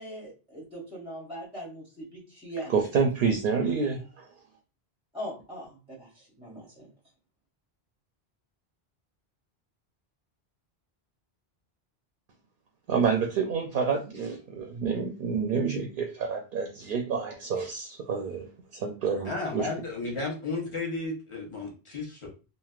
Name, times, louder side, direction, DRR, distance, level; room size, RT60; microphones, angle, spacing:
voice 1, 0.0-2.7 5.1-6.9, right 1 dB, 5° right, -4 dB, 0.7 m, -40 dB
voice 2, 2.7-4.3 12.9-18.5 18.7-19.7, right 5 dB, 65° right, 3 dB, 0.7 m, -28 dB
voice 3, 19.2-22.3, left 3 dB, 30° left, -1 dB, 0.9 m, -33 dB
3.2 x 2.6 x 2.3 m, 0.33 s
omnidirectional pair, 1.1 m